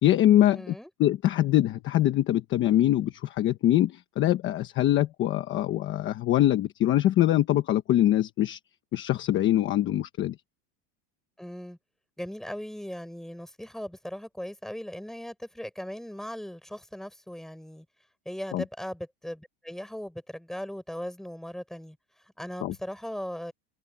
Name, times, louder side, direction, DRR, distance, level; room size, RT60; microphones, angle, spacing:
voice 1, 0.0-0.7 1.0-8.6 8.9-10.3 18.5-18.6 22.6-22.7, left 13 dB, 30° left, 1.1 m, -23 dB
voice 2, 0.5-0.9 11.4-11.8 12.2-17.9 18.3-22.0 22.2-23.5, equal, ahead, 7.5 m, -38 dB
cardioid pair, 175°, 37 cm